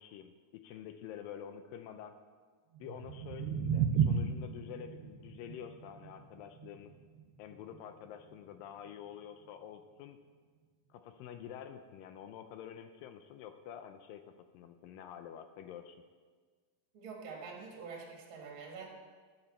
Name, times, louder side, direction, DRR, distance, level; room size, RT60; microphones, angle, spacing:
voice 1, 0.0-2.2 2.8-6.9 7.4-10.2 10.9-14.2 14.5-16.0, left 9 dB, 85° left, 8 dB, 2.0 m, -48 dB
sound 1, 2.7-8.9, right 7 dB, 85° right, 2.9 m, -35 dB
voice 2, 16.9-18.9, right 5 dB, 40° right, -1 dB, 2.1 m, -46 dB
14.0 x 9.9 x 4.4 m, 1.5 s
omnidirectional pair, 4.5 m